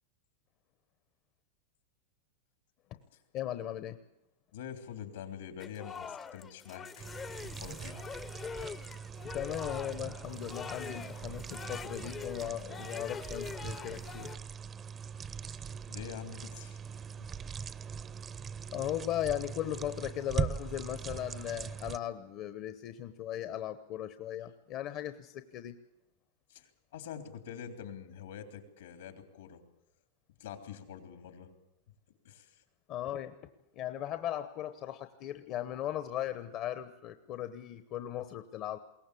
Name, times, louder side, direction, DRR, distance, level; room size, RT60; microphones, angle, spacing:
voice 1, 3.3-4.0 9.3-14.3 18.7-25.7 32.9-33.4 33.7-38.8, left 12 dB, 45° left, 10 dB, 1.0 m, -37 dB
voice 2, 4.5-7.1 7.4-8.0 15.9-16.8 26.5-29.6 30.4-31.5 32.2-32.6, left 8 dB, 80° left, 7 dB, 3.4 m, -45 dB
sound 1, 5.6-14.4, left 6 dB, 25° left, 0.7 m, -44 dB
sound 2, 7.0-22.0, right 7 dB, 25° right, 0.7 m, -41 dB
22.0 x 18.0 x 8.5 m, 0.90 s
hypercardioid pair, 120°, 0 cm